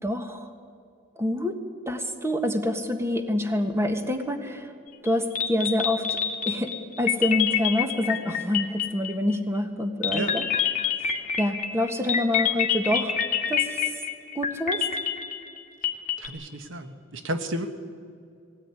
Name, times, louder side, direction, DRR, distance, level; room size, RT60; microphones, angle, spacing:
voice 1, 0.0-0.5 1.2-1.5 1.9-4.7 5.0-6.2 6.5-6.7 7.0-10.4 10.8-10.9 11.4-13.2 13.5-13.8 14.3-14.8, left 1 dB, 15° right, 6 dB, 1.5 m, -26 dB
sound 1, 5.1-5.2 5.4-9.3 10.0-16.3, left 8 dB, 40° left, 2.2 m, -27 dB
voice 2, 16.2-17.7, right 1 dB, 70° right, 8 dB, 1.3 m, -32 dB
20.5 x 17.5 x 9.7 m, 2.4 s
head